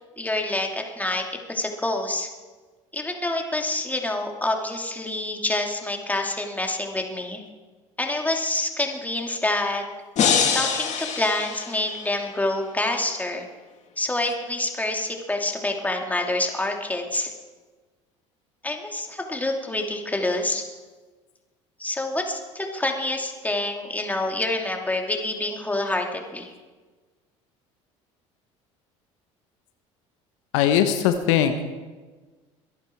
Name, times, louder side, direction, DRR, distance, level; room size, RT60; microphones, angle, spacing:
voice 1, 0.2-1.2 1.5-2.3 2.9-7.4 8.0-9.8 10.5-13.5 14.0-17.3 18.6-20.6 21.8-26.5, left 2 dB, 10° left, 2 dB, 2.8 m, -27 dB
sound 1, 10.2-12.3, left 7 dB, 50° left, 2.6 m, -24 dB
voice 2, 30.5-31.7, left 9 dB, 75° left, 8 dB, 1.1 m, -20 dB
23.0 x 11.0 x 4.6 m, 1.3 s
hypercardioid pair, 70°, 16 cm